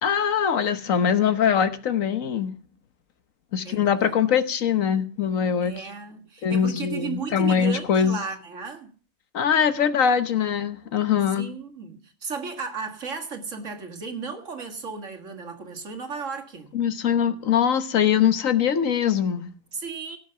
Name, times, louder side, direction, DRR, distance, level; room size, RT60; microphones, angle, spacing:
voice 1, 0.0-2.5 3.5-5.7 6.4-8.2 9.3-11.5 16.7-19.5, left 8 dB, 75° left, 1.5 m, -22 dB
voice 2, 3.6-4.4 5.6-8.9 11.4-16.7 19.7-20.2, right 5 dB, 65° right, 2.2 m, -35 dB
17.0 x 6.6 x 6.8 m
omnidirectional pair, 1.4 m